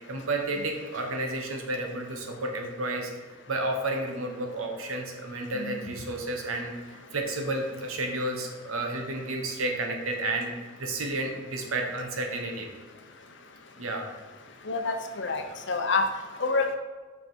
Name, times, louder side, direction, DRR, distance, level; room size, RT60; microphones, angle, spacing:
voice 1, 0.0-3.1 3.5-10.5 10.8-12.7 13.8-14.1, right 2 dB, 80° right, 2 dB, 1.2 m, -31 dB
voice 2, 14.7-16.0 16.4-16.8, left 4 dB, 55° left, 5 dB, 0.7 m, -27 dB
5.5 x 5.4 x 4.6 m, 1.4 s
head